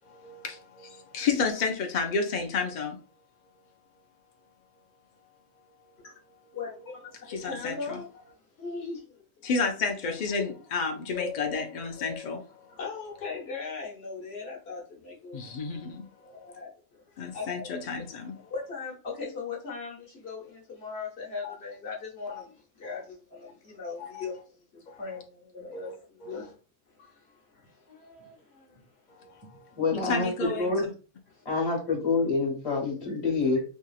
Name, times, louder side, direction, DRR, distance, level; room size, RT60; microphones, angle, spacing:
voice 1, 0.1-3.0 7.3-8.0 9.4-12.8 15.3-16.0 16.4-16.5 17.2-18.3 21.4-21.5 22.3-22.4 24.0-24.2 24.9-25.0 25.7-26.0 26.2-26.3 29.2-30.9, left 4 dB, 80° left, 0.4 m, -31 dB
voice 2, 6.5-8.1 8.5-9.2 10.4-10.5 12.7-15.5 16.2-17.7 18.0-18.1 18.4-26.6 26.9-28.9 31.3-31.4, left 4 dB, 55° left, 1.1 m, -39 dB
voice 3, 29.8-30.9 31.4-33.6, left 3 dB, 30° left, 1.0 m, -27 dB
2.9 x 2.7 x 2.3 m
omnidirectional pair, 1.4 m